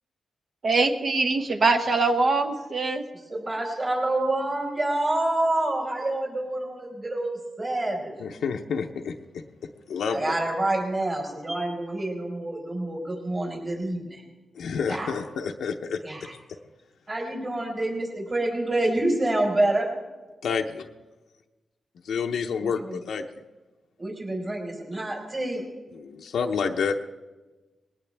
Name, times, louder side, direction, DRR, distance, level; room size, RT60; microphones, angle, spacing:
voice 1, 0.6-3.0, right 3 dB, 50° right, 6 dB, 1.1 m, -23 dB
voice 2, 3.3-8.1 10.1-14.2 14.9-15.1 16.0-16.3 17.1-19.9 22.9-23.0 24.0-25.6, right 1 dB, 30° right, -1 dB, 4.7 m, -27 dB
voice 3, 8.2-9.4 9.9-10.3 14.5-16.0 16.5-16.6 20.4-20.9 22.0-23.2 25.9-27.0, left 6 dB, 90° left, 3 dB, 0.7 m, -29 dB
20.5 x 18.0 x 3.5 m, 1.2 s
cardioid pair, 95°, 0 cm